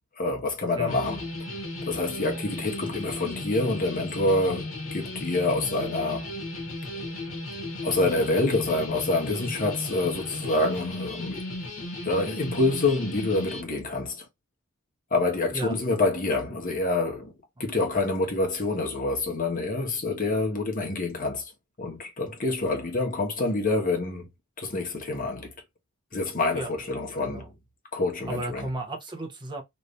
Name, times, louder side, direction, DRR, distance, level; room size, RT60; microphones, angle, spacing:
voice 1, 0.2-1.3 1.9-6.3 7.8-11.4 12.0-14.3 15.1-17.3 17.6-21.5 21.8-24.3 24.6-25.5 26.1-27.5 27.9-28.7, left 2 dB, 40° left, 1.4 m, -27 dB
sound 1, 0.9-13.6, left 2 dB, 75° left, 1.4 m, -35 dB
voice 2, 27.2-27.5 28.3-29.6, right 1 dB, 20° right, 1.1 m, -34 dB
3.2 x 2.9 x 2.6 m
head